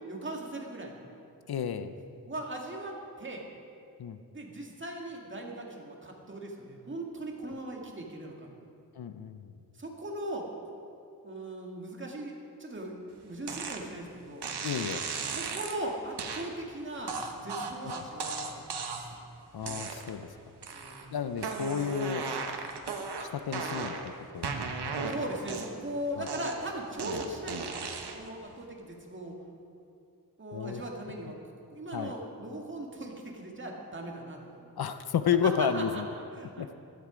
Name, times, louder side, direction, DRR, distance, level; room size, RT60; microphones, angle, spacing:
voice 1, 0.1-1.0 2.3-3.4 4.3-8.5 9.7-10.5 11.2-12.9 13.2-14.5 15.3-18.6 20.7-21.1 22.4-22.5 25.1-29.4 30.4-31.4 31.7-34.7 35.4-36.7, right 1 dB, 30° right, 0 dB, 2.0 m, -39 dB
voice 2, 1.5-2.0 4.0-4.2 9.0-9.5 14.6-15.0 19.5-20.3 21.1-22.3 23.3-24.0 24.3-24.5 26.2-26.3 30.5-30.8 31.9-32.1 34.8-36.1 36.6-36.7, left 7 dB, 70° left, 10 dB, 0.7 m, -31 dB
sound 1, 13.5-13.8 14.4-15.8 16.2-16.5 17.1-19.2 19.6-20.2 20.6-21.1 21.4-24.1 24.4-25.9 26.3-28.3, right 4 dB, 90° right, 1.3 m, -36 dB
15.0 x 13.0 x 5.1 m, 2.5 s
wide cardioid pair, 165°, 39 cm